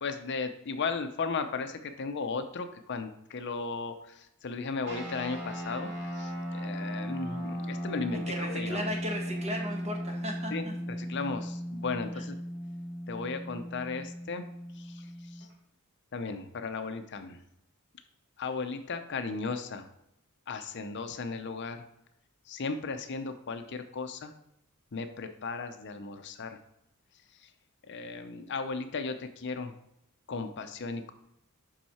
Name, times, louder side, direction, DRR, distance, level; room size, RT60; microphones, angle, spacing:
voice 1, 0.0-9.1 10.5-12.4 13.1-14.4 14.7-15.5 16.1-17.4 18.4-19.9 20.5-21.8 22.5-24.3 24.9-26.6 27.4-27.5 27.9-29.7 30.3-31.1, left 4 dB, 50° left, 8 dB, 0.5 m, -36 dB
sound 1, 4.8-15.5, equal, 55° right, 2.0 m, -37 dB
voice 2, 8.1-10.7 12.1-12.2, equal, 30° right, 1 dB, 1.5 m, -36 dB
7.4 x 5.5 x 4.2 m, 0.82 s
head